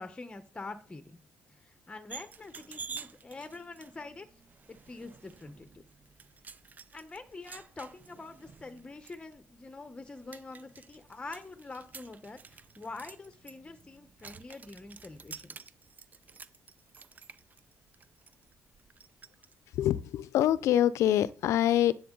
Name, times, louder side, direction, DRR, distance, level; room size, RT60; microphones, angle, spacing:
voice 1, 0.0-4.3 4.7-5.8 6.9-15.6, left 3 dB, 20° left, 1.0 m, -45 dB
sound 1, 2.1-19.5, right 5 dB, 35° right, 0.5 m, -50 dB
voice 2, 19.7-21.9, left 12 dB, 80° left, 0.5 m, -25 dB
10.0 x 7.3 x 3.9 m
cardioid pair, 100°, 5 cm